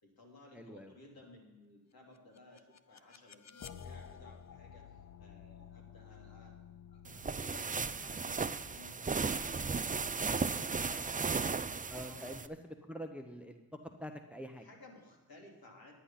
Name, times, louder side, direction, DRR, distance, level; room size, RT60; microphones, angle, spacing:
voice 1, 0.0-6.6 6.9-12.3 14.5-15.9, left 2 dB, 60° left, -1 dB, 3.3 m, -58 dB
voice 2, 0.5-0.9 11.9-13.6 14.0-14.7, equal, 5° right, 6 dB, 1.0 m, -45 dB
sound 1, 2.1-11.1, left 8 dB, 40° left, 0.6 m, -54 dB
sound 2, 7.0-12.5, right 4 dB, 20° right, 0.5 m, -35 dB
10.0 x 9.9 x 5.8 m, 1.1 s
cardioid pair, 60°, 41 cm